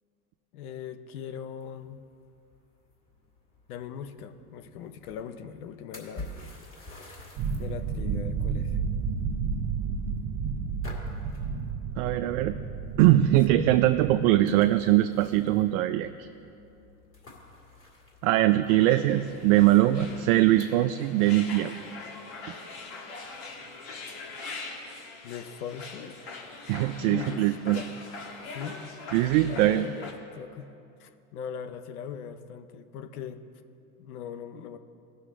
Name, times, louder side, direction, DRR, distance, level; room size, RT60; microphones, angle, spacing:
voice 1, 0.5-2.0 3.7-6.3 7.5-8.8 25.2-26.2 26.7-27.9 28.5-28.8 29.5-30.7 31.0-33.4 34.0-34.8, left 8 dB, 75° left, 10 dB, 0.7 m, -40 dB
sound 1, 1.6-20.7, left 2 dB, 30° left, 2.3 m, -51 dB
sound 2, 7.4-14.2, right 5 dB, 45° right, 0.8 m, -32 dB
voice 2, 12.0-12.6 13.0-16.3 18.2-21.8 26.7-27.8 29.1-29.9, right 14 dB, 65° right, 8 dB, 0.5 m, -22 dB
sound 3, 18.7-30.1, left 3 dB, 55° left, 1.5 m, -42 dB
16.0 x 6.1 x 3.7 m, 2.6 s
hypercardioid pair, 90°, 45 cm